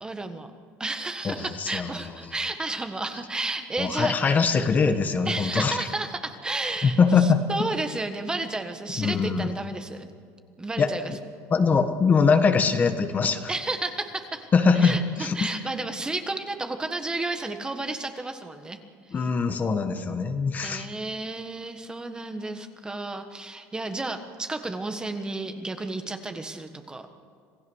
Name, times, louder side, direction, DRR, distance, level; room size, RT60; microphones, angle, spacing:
voice 1, 0.0-0.5 0.8-4.4 5.2-10.1 10.6-11.1 13.5-14.5 14.7-18.8 19.1-19.2 20.6-27.1, right 2 dB, 15° right, 7 dB, 1.4 m, -32 dB
voice 2, 1.2-1.9 3.8-5.8 6.8-7.4 9.0-9.5 10.8-11.2 11.5-13.5 14.5-15.4 19.1-20.9, left 5 dB, 30° left, 8 dB, 1.4 m, -22 dB
27.0 x 16.0 x 6.4 m, 2.3 s
cardioid pair, 120°, 6 cm